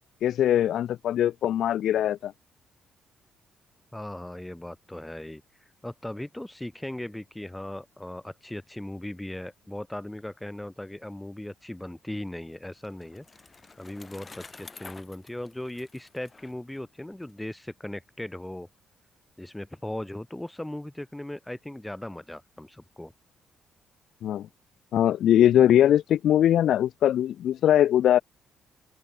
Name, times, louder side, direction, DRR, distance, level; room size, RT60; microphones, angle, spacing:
voice 1, 0.2-2.3 24.2-24.5 24.9-28.2, left 11 dB, 75° left, 0.9 m, -21 dB
voice 2, 3.9-5.4 5.8-13.2 13.8-18.7 19.4-23.1, left 1 dB, 10° left, 5.9 m, -38 dB
Bicycle, 12.5-17.3, left 3 dB, 25° left, 5.3 m, -49 dB
open air
cardioid pair, 90°, 0 cm